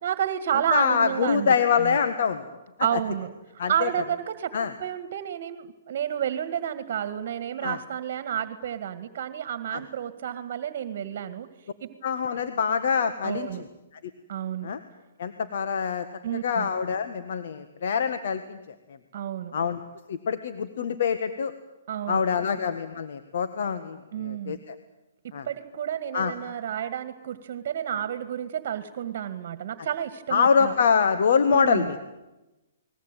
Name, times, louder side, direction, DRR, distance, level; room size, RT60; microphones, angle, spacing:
voice 1, 0.0-2.0 2.8-3.3 3.7-4.5 4.8-11.5 11.8-11.9 13.2-13.7 14.3-14.7 16.2-16.7 19.1-19.6 21.9-22.6 24.1-24.6 25.5-30.8 31.5-31.9, right 10 dB, 55° right, 11 dB, 1.9 m, -30 dB
voice 2, 0.7-2.4 3.6-3.9 4.5-4.7 7.6-7.8 9.7-9.8 12.0-13.6 14.6-14.8 15.2-16.0 16.4-18.4 19.5-19.8 20.1-21.5 22.1-24.7 25.3-25.5 26.1-26.3 30.3-32.0, left 6 dB, 65° left, 9 dB, 1.6 m, -25 dB
29.5 x 20.5 x 9.1 m, 1.0 s
hypercardioid pair, 145°, 0 cm